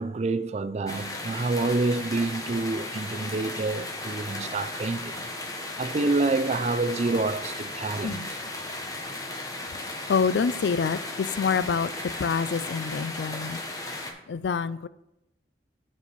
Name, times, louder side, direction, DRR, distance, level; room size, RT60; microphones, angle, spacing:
voice 1, 0.0-5.3 5.8-8.4, right 3 dB, 40° right, 0.4 m, -28 dB
sound 1, 0.9-14.1, left 2 dB, 20° left, 1.0 m, -36 dB
voice 2, 10.1-11.9 12.2-13.6 14.3-14.9, left 6 dB, 75° left, 0.4 m, -26 dB
7.0 x 4.5 x 6.7 m
head